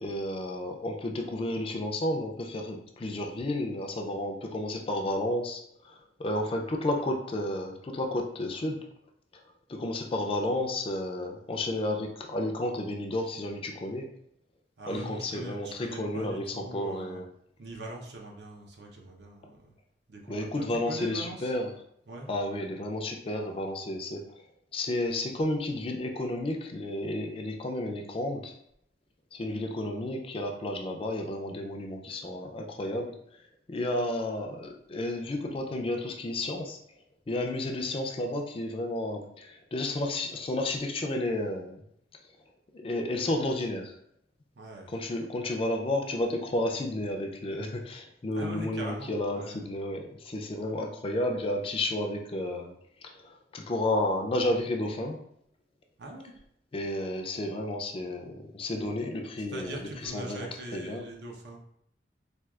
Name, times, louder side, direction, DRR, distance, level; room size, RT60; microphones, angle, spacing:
voice 1, 0.0-8.8 9.7-14.1 14.9-17.3 20.3-21.7 22.3-24.2 24.7-28.6 29.3-33.1 33.7-36.8 37.3-41.8 42.7-44.0 44.9-52.7 53.0-55.2 56.7-61.1, left 1 dB, 30° left, 2 dB, 0.4 m, -32 dB
voice 2, 14.8-17.2 17.6-19.7 20.1-21.5 22.1-22.3 44.5-44.9 48.3-49.6 50.6-50.8 56.0-56.3 59.4-61.6, right 1 dB, 75° right, 0 dB, 0.7 m, -42 dB
4.3 x 2.3 x 2.4 m, 0.71 s
head